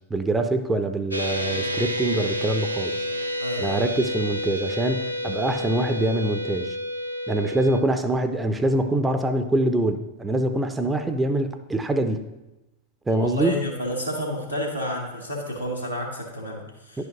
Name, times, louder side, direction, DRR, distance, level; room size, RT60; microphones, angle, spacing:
voice 1, 0.1-3.0 3.6-6.8 7.3-12.3 13.1-13.5 17.0-17.1, right 1 dB, 10° right, 8 dB, 0.5 m, -24 dB
sound 1, 1.1-7.8, equal, 85° right, 0.6 m, -29 dB
voice 2, 3.4-3.8 13.1-17.1, left 1 dB, 90° left, -3 dB, 1.6 m, -30 dB
10.5 x 4.9 x 3.0 m, 0.98 s
figure-of-eight pair, 90°, 0 cm